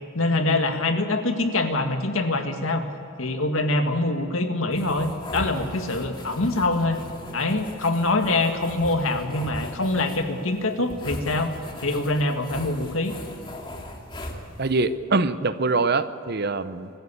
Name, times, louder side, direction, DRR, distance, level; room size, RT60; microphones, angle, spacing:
voice 1, 0.1-2.9 3.2-7.0 7.3-11.5 11.8-13.2, left 2 dB, 75° left, 5 dB, 1.9 m, -24 dB
sound 1, 4.7-14.9, left 1 dB, 25° left, 2.4 m, -39 dB
voice 2, 14.6-16.9, right 3 dB, 50° right, 12 dB, 0.8 m, -24 dB
24.5 x 14.5 x 8.5 m, 2.8 s
head